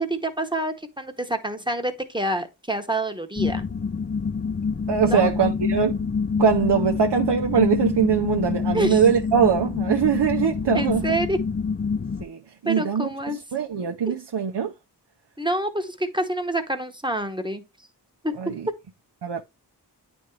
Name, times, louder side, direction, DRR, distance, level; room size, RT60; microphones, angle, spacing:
voice 1, 0.0-3.7 5.1-5.3 8.7-9.0 10.7-11.4 12.7-13.4 14.0-14.1 15.4-17.6 18.2-18.3, right 1 dB, 10° right, 1.0 m, -27 dB
sound 1, 3.3-12.2, left 5 dB, 30° left, 0.4 m, -26 dB
voice 2, 4.9-6.0 6.4-11.1 12.2-13.1 13.5-14.7 18.4-18.7 19.2-19.4, right 7 dB, 85° right, 0.6 m, -22 dB
9.3 x 3.5 x 3.1 m
wide cardioid pair, 50°, 40 cm